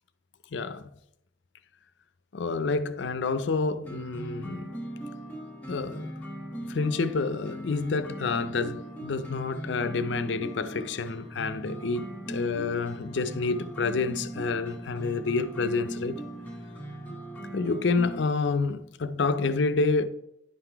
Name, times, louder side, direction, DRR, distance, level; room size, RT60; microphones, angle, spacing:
voice 1, 0.5-0.9 2.3-4.7 5.7-6.2 6.7-16.2 17.5-20.1, left 4 dB, 70° left, 0.5 m, -28 dB
sound 1, 3.8-18.2, right 1 dB, 10° left, 1.1 m, -39 dB
10.0 x 3.9 x 4.5 m
head